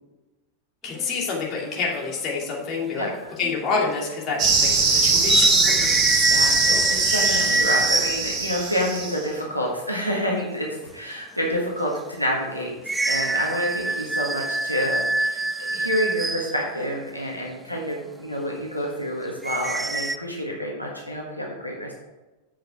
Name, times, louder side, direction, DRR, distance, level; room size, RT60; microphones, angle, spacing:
voice 1, 0.8-3.1 3.4-6.2 6.7-7.2, left 4 dB, 35° left, -2 dB, 2.5 m, -28 dB
sound 1, 0.9-1.2 2.3-2.4 3.4-3.8 4.1-4.2 5.2-8.5 12.9-16.6 19.4-20.2, right 2 dB, 10° right, 0.4 m, -24 dB
voice 2, 2.9-3.3 6.3-6.7 7.1-12.7 13.0-21.9, equal, 90° left, -2 dB, 1.5 m, -28 dB
sound 2, 4.4-9.2, right 4 dB, 35° right, 1.6 m, -22 dB
8.1 x 6.4 x 4.8 m, 1.1 s
figure-of-eight pair, 90°, 0 cm